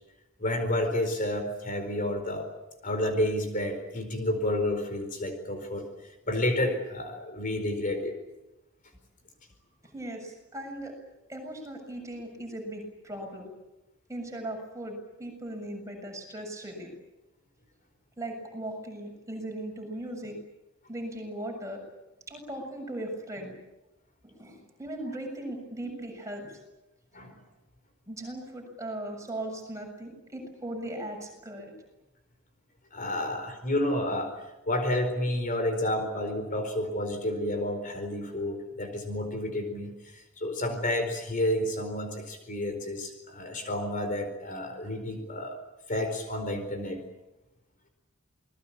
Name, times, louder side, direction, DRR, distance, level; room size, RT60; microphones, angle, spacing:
voice 1, 0.4-2.5 2.8-5.9 6.3-8.1 27.1-27.3 32.9-34.3 34.7-45.6 45.9-47.0, left 1 dB, 40° left, 6 dB, 4.5 m, -30 dB
voice 2, 9.9-10.9 11.3-13.5 14.1-16.9 18.2-20.4 20.9-21.8 22.3-23.5 24.2-26.6 28.1-31.7, right 1 dB, 15° right, 2 dB, 7.3 m, -38 dB
28.5 x 20.5 x 8.7 m, 0.97 s
head